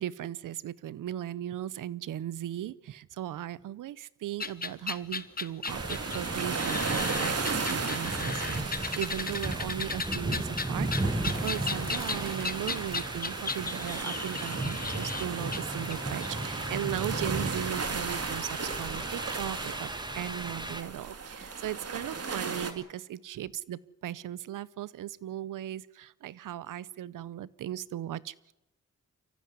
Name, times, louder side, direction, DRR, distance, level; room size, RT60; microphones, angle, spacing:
voice 1, 0.0-8.7 9.0-28.5, right 12 dB, 90° right, 20 dB, 0.7 m, -37 dB
sound 1, 4.4-16.3, left 4 dB, 30° left, 1.2 m, -36 dB
sound 2, 5.7-20.8, right 1 dB, 15° right, 1.9 m, -36 dB
sound 3, 5.7-22.7, right 4 dB, 50° right, 2.6 m, -36 dB
24.5 x 15.0 x 9.7 m, 0.95 s
cardioid pair, 55°, 31 cm